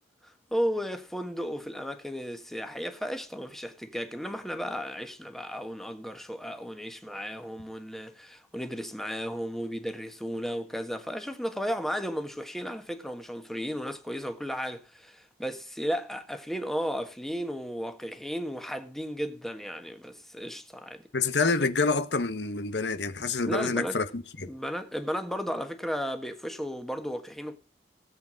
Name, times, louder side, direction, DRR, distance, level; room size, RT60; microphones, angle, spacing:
voice 1, 0.5-21.0 23.5-24.0 24.5-27.6, equal, ahead, 1.4 m, -34 dB
voice 2, 21.1-24.5, left 4 dB, 75° left, 1.2 m, -27 dB
17.0 x 8.1 x 5.1 m
head